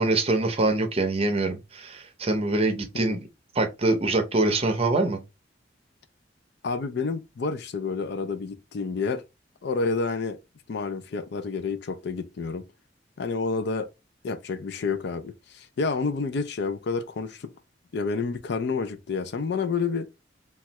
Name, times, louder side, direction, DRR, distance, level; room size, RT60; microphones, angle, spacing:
voice 1, 0.0-3.2 3.6-5.2, right 2 dB, 35° right, 0.6 m, -24 dB
voice 2, 6.6-9.2 9.6-10.4 10.7-12.7 13.2-13.9 14.2-17.5 17.9-20.1, left 4 dB, 65° left, 0.4 m, -29 dB
3.1 x 2.3 x 2.8 m
head